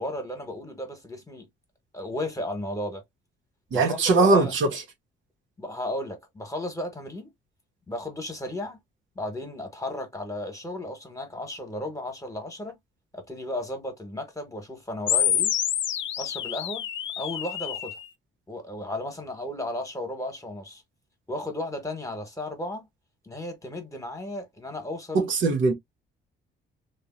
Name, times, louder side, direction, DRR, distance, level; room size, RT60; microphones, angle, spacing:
voice 1, 0.0-1.5 1.9-3.0 3.7-4.5 5.6-7.3 7.9-8.8 9.1-12.8 13.1-15.5 16.2-16.9 17.2-18.0 18.5-20.8 21.3-22.9 23.2-25.3, left 1 dB, 15° left, 1.3 m, -34 dB
voice 2, 3.7-4.7 25.1-25.7, right 3 dB, 75° right, 1.2 m, -20 dB
sound 1, 15.1-18.1, left 10 dB, 70° left, 0.6 m, -27 dB
3.0 x 2.5 x 2.5 m
cardioid pair, 90°, 20 cm